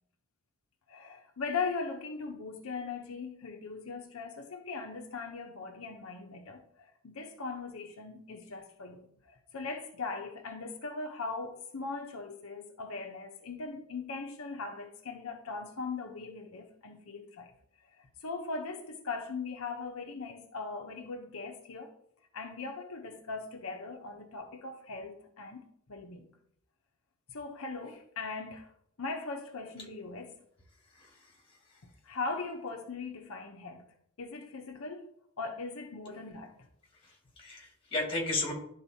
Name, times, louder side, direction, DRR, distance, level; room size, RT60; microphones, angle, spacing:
voice 1, 0.9-17.5 18.0-21.9 22.3-26.3 27.3-28.7 29.0-30.4 32.0-33.8 34.2-36.6, left 4 dB, 80° left, 0.7 m, -39 dB
voice 2, 30.9-31.8 37.0-38.5, left 2 dB, 25° left, 1.8 m, -35 dB
11.5 x 3.9 x 2.7 m
head